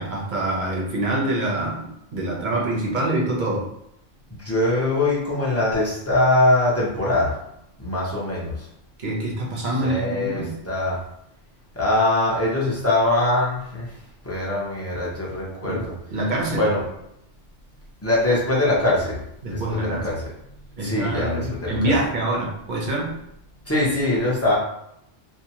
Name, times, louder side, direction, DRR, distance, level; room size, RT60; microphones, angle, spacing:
voice 1, 0.0-3.7 9.0-10.5 15.6-15.8 16.1-16.6 19.4-20.0 20.8-23.2, right 1 dB, 50° right, -3 dB, 0.6 m, -25 dB
voice 2, 4.3-7.3 7.8-8.7 9.7-11.0 11.7-14.0 14.2-15.9 16.6-16.8 18.0-19.1 19.5-20.3 20.7-21.9 23.6-24.6, left 2 dB, 20° left, -6 dB, 0.4 m, -22 dB
2.6 x 2.1 x 2.8 m, 0.79 s
omnidirectional pair, 1.3 m